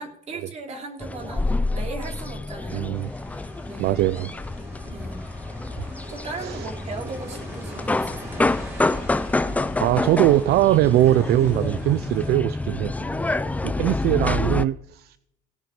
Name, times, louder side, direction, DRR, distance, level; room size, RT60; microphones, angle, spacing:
voice 1, 0.0-3.0 3.3-4.0 4.8-5.3 6.1-8.5 12.9-14.1, right 3 dB, 40° right, 2 dB, 3.2 m, -38 dB
sound 1, 1.0-14.6, left 2 dB, 10° left, 0.4 m, -28 dB
voice 2, 2.7-3.1 3.8-4.3 6.4-6.7 9.8-12.9 13.6-15.2, right 14 dB, 70° right, 16 dB, 0.4 m, -21 dB
sound 2, 2.9-12.3, equal, 15° right, 4.1 m, -39 dB
17.5 x 6.0 x 5.1 m, 0.74 s
cardioid pair, 110°, 17 cm